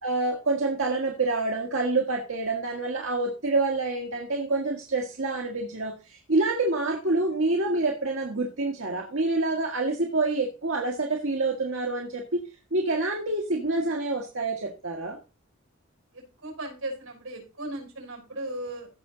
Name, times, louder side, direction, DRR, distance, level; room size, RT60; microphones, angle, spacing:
voice 1, 0.0-12.4 12.7-15.2, right 2 dB, 70° right, 0 dB, 1.7 m, -27 dB
voice 2, 16.1-18.9, right 1 dB, 90° right, 2 dB, 6.2 m, -37 dB
15.5 x 6.0 x 3.9 m, 0.33 s
head